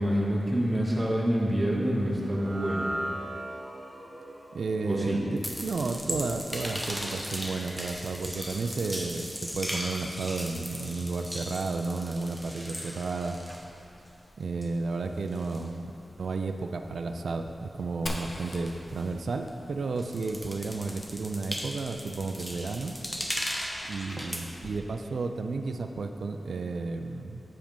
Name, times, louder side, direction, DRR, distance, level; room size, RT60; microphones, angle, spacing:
voice 1, 0.0-2.9 4.9-5.2, equal, 10° right, -4 dB, 1.0 m, -27 dB
sound 1, 2.2-8.6, right 1 dB, 30° right, 1.1 m, -41 dB
voice 2, 4.5-13.4 14.4-15.9 16.2-22.9 23.9-27.4, right 3 dB, 75° right, 6 dB, 0.4 m, -32 dB
sound 2, 5.3-14.3 14.6-19.6 19.9-24.8, equal, 5° left, 0.7 m, -38 dB
Fire, 18.1-21.7, left 1 dB, 45° left, 0.8 m, -42 dB
7.4 x 5.0 x 5.2 m, 2.7 s
wide cardioid pair, 140°, 0 cm